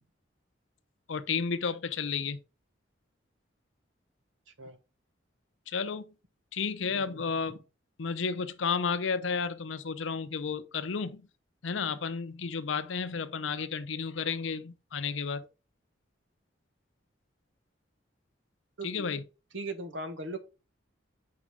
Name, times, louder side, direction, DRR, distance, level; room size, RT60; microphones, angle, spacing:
voice 1, 1.1-2.4 5.7-6.1 6.5-7.6 8.0-11.2 11.6-15.4 18.8-19.2, left 5 dB, 80° left, 0.6 m, -32 dB
voice 2, 6.9-7.6 18.8-19.1 19.5-20.4, right 2 dB, 80° right, 1.2 m, -39 dB
5.0 x 4.8 x 5.1 m
head